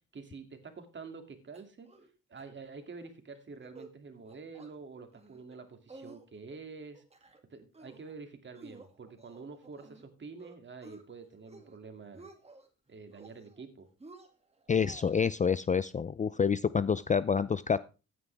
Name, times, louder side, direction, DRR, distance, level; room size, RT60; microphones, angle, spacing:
voice 1, 0.1-1.9 2.3-7.0 7.5-12.3 12.9-13.9, right 4 dB, 40° right, 6 dB, 2.7 m, -47 dB
sound 1, 1.5-2.1 2.4-2.5 2.8-3.1 3.5-4.0 4.3-4.7 5.1-5.6 5.9-6.6 6.9-7.4 7.7-8.1 8.6-10.1 10.4-11.0 11.4-11.8 12.0-12.7 13.1-13.7 14.0-15.3, right 3 dB, 20° right, 2.3 m, -53 dB
voice 2, 14.7-17.8, left 6 dB, 25° left, 16 dB, 0.4 m, -28 dB
15.0 x 9.3 x 3.5 m, 0.32 s
cardioid pair, 90°, 30 cm